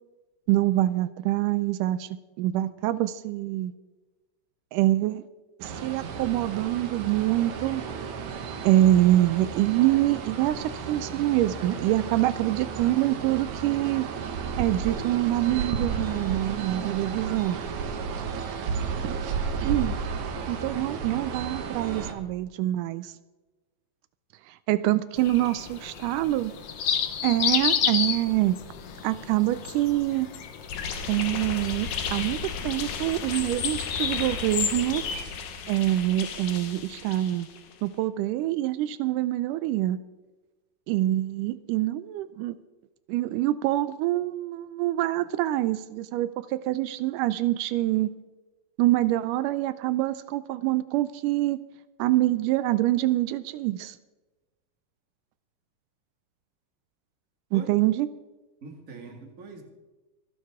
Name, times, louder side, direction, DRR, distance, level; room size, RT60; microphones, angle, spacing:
voice 1, 0.5-2.1 2.4-3.7 4.7-5.3 5.6-7.9 8.6-14.1 14.6-17.6 19.0-19.2 19.6-20.0 20.5-23.1 24.5-26.5 27.2-28.6 29.0-30.3 31.1-35.0 35.7-37.5 37.8-40.0 40.9-42.6 43.1-48.1 48.8-51.6 52.0-54.0 57.5-58.1, right 15 dB, 85° right, 14 dB, 2.1 m, -25 dB
sound 1, 5.6-22.1, right 5 dB, 70° right, 2.5 m, -33 dB
voice 2, 20.3-20.8 57.5-57.7 58.6-59.6, right 4 dB, 30° right, 2 dB, 2.1 m, -44 dB
sound 2, 25.2-35.2, left 7 dB, 85° left, 1.0 m, -31 dB
sound 3, 30.7-37.7, left 6 dB, 70° left, 2.6 m, -35 dB
26.0 x 9.4 x 3.6 m, 1.2 s
omnidirectional pair, 3.7 m